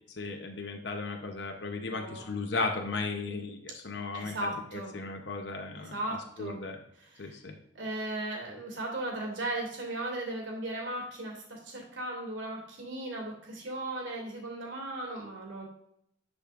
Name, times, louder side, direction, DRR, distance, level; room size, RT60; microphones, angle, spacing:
voice 1, 0.2-5.9 6.4-6.8 7.2-7.5, left 3 dB, 65° left, 3 dB, 0.8 m, -36 dB
voice 2, 1.8-2.2 4.1-4.9 5.7-6.6 7.0-7.4 7.7-15.7, right 1 dB, 85° right, 0 dB, 2.6 m, -37 dB
10.0 x 5.0 x 2.5 m, 0.74 s
head